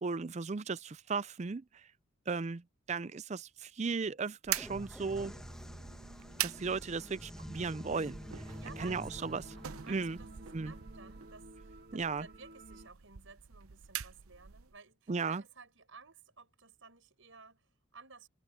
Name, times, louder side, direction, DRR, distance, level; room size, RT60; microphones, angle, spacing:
voice 1, 0.0-1.9 2.3-5.3 6.4-8.4 8.8-9.4 9.9-10.2 10.5-10.7 11.9-12.3 15.1-15.4, right 4 dB, 30° right, 0.4 m, -36 dB
sound 1, 4.4-14.8, right 11 dB, 90° right, 0.7 m, -44 dB
sound 2, 4.5-12.1, equal, 5° left, 1.3 m, -49 dB
sound 3, 5.1-12.9, right 1 dB, 50° right, 1.9 m, -55 dB
voice 2, 8.6-9.4 9.8-18.3, right 4 dB, 65° right, 6.3 m, -56 dB
head